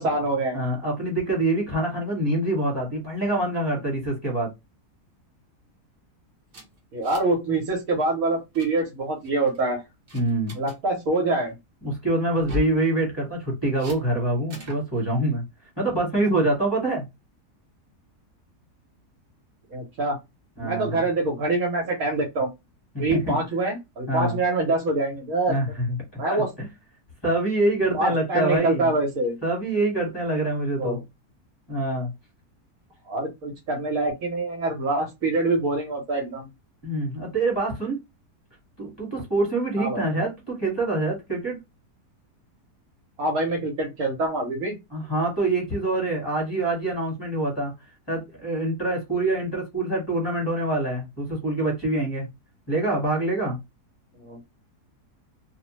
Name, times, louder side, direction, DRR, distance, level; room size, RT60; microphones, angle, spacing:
voice 1, 0.0-0.6 6.9-9.8 10.5-11.6 19.7-20.2 20.6-22.5 23.0-25.5 26.2-26.5 27.9-29.4 30.8-31.0 33.1-36.5 39.8-40.2 43.2-44.8 54.2-54.4, right 2 dB, 65° right, 1.2 m, -25 dB
voice 2, 0.5-4.5 10.1-10.5 11.8-15.4 15.8-17.0 20.6-21.0 22.9-23.4 24.1-24.4 25.5-26.7 27.2-28.9 29.4-31.0 31.7-32.1 36.8-38.0 38.8-41.6 44.9-47.7 48.1-52.3 52.7-53.6, right 2 dB, 15° left, 1.2 m, -25 dB
sound 1, 6.5-7.4 7.7-7.9 8.3-8.7 9.2-9.6 10.1-10.8 12.3-12.8 13.8-14.0 14.5-14.8, left 3 dB, 45° right, 0.7 m, -36 dB
2.6 x 2.1 x 3.0 m
omnidirectional pair, 1.7 m